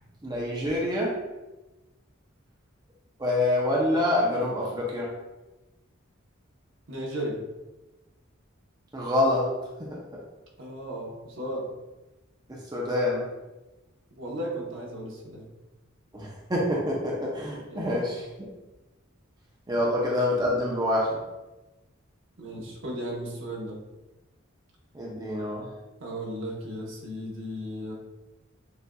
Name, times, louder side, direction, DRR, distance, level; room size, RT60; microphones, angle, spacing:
voice 1, 0.2-1.2 3.2-5.1 8.9-10.2 12.5-13.3 16.1-18.5 19.7-21.2 24.9-25.7, left 1 dB, 20° right, -4 dB, 0.6 m, -27 dB
voice 2, 6.9-7.4 10.6-11.7 14.2-15.5 17.7-17.9 19.7-19.9 22.4-23.8 26.0-27.9, right 1 dB, 70° right, -3 dB, 1.0 m, -35 dB
6.7 x 2.5 x 2.3 m, 1.1 s
head